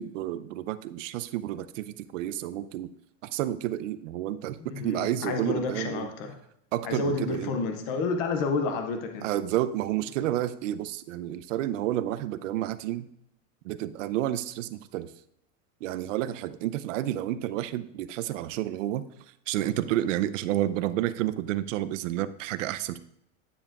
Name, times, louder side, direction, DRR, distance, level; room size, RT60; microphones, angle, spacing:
voice 1, 0.0-2.9 3.2-6.1 6.7-7.5 9.2-13.1 13.6-15.1 15.8-19.1 19.5-23.0, right 13 dB, 75° right, 13 dB, 0.6 m, -30 dB
voice 2, 4.6-6.4 6.8-9.3, left 4 dB, 20° left, 5 dB, 0.3 m, -30 dB
9.9 x 7.0 x 2.4 m, 0.75 s
supercardioid pair, 170°, 38 cm